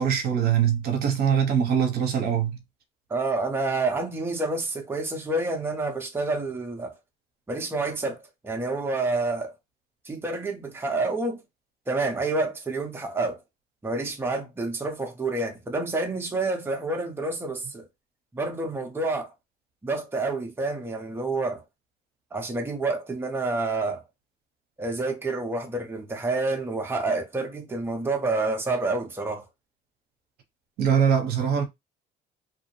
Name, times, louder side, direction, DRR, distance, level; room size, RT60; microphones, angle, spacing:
voice 1, 0.0-2.6 30.8-31.6, right 8 dB, 65° right, 0.7 m, -22 dB
voice 2, 3.1-6.9 7.5-9.5 10.1-11.4 11.9-13.4 13.8-17.9 18.3-19.3 19.8-21.6 22.3-24.0 24.8-29.5, right 3 dB, 15° right, 0.7 m, -28 dB
2.7 x 2.0 x 2.9 m
cardioid pair, 110°, 17 cm